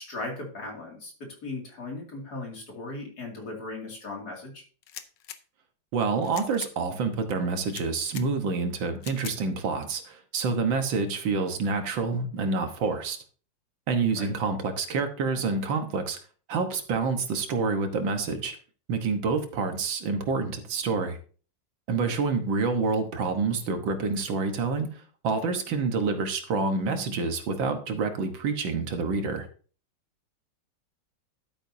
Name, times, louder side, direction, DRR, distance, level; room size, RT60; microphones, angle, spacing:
voice 1, 0.0-4.6 14.2-14.3 22.0-22.2, left 2 dB, 55° left, 0 dB, 3.0 m, -38 dB
sound 1, 4.8-5.4 6.2-6.7 7.6-8.3 9.0-9.4, left 10 dB, 75° left, 1.4 m, -42 dB
voice 2, 5.9-13.2 13.9-16.2 16.5-18.6 18.9-21.2 21.9-29.5, right 4 dB, 85° right, 6 dB, 2.0 m, -28 dB
11.5 x 8.7 x 2.7 m, 0.40 s
omnidirectional pair, 2.0 m